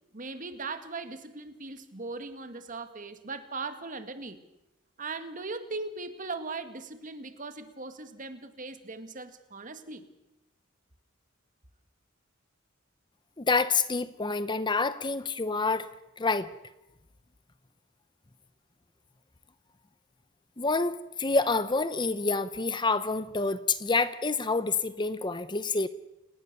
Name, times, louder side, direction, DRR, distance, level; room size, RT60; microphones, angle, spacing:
voice 1, 0.1-4.4 5.0-10.0, right 3 dB, 40° right, 2.0 m, -39 dB
voice 2, 13.4-15.9 16.2-16.5 20.6-25.9, left 3 dB, 20° left, 0.8 m, -27 dB
30.0 x 19.0 x 6.9 m
head